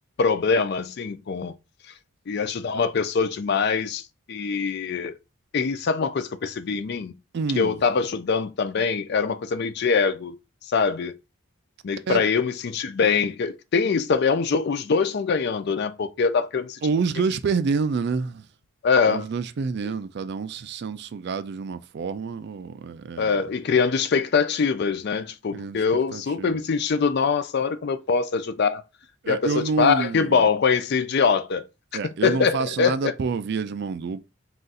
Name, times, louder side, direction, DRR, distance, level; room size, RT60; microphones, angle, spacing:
voice 1, 0.2-1.5 2.3-4.0 4.3-5.1 5.5-7.1 7.6-10.3 10.7-11.1 11.8-16.8 18.8-19.3 23.2-28.8 29.3-31.6 32.2-33.1, left 5 dB, 50° left, 0.4 m, -23 dB
voice 2, 7.3-7.7 12.1-12.3 16.8-18.5 19.1-23.4 25.5-25.8 26.1-26.6 29.2-30.5 31.9-34.2, right 5 dB, 50° right, 0.3 m, -28 dB
3.8 x 2.4 x 4.0 m
head